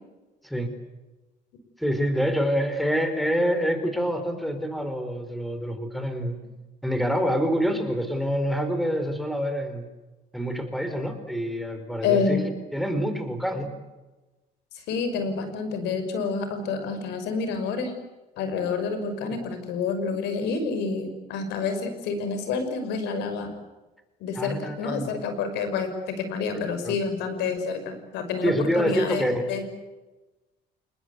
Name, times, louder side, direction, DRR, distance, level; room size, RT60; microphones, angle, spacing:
voice 1, 1.8-6.4 6.8-9.8 10.3-13.7 24.3-25.1 26.8-26.9 28.4-29.4, equal, ahead, 8 dB, 4.7 m, -26 dB
voice 2, 12.0-12.5 14.9-18.0 18.4-23.5 24.2-29.6, left 5 dB, 90° left, 8 dB, 5.8 m, -28 dB
29.5 x 20.0 x 8.3 m, 1.1 s
cardioid pair, 110°, 17 cm